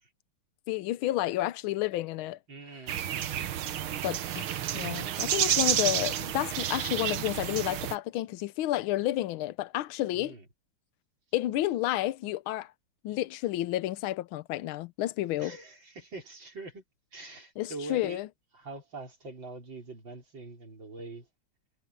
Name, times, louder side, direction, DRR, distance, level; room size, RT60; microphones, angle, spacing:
voice 1, 0.7-2.4 4.0-10.4 11.3-12.7 13.0-15.5 17.6-18.3, left 15 dB, 80° left, 1.5 m, -31 dB
voice 2, 2.5-3.5 10.1-10.5 15.4-16.8 17.1-18.2 18.5-21.3, right 3 dB, 60° right, 5.5 m, -44 dB
sound 1, 2.9-8.0, right 11 dB, 80° right, 1.8 m, -30 dB
omnidirectional pair, 2.3 m